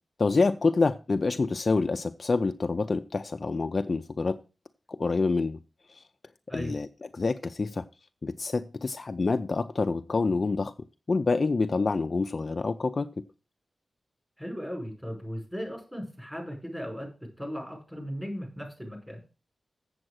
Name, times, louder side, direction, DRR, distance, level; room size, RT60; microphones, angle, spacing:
voice 1, 0.2-4.4 4.9-5.6 5.9-6.0 6.5-6.9 7.1-7.8 8.2-10.7 11.1-13.1, left 3 dB, 35° left, 0.4 m, -27 dB
voice 2, 14.4-17.1 17.4-19.2, equal, 10° right, 5.0 m, -37 dB
7.8 x 7.7 x 6.2 m
wide cardioid pair, 165°, 0 cm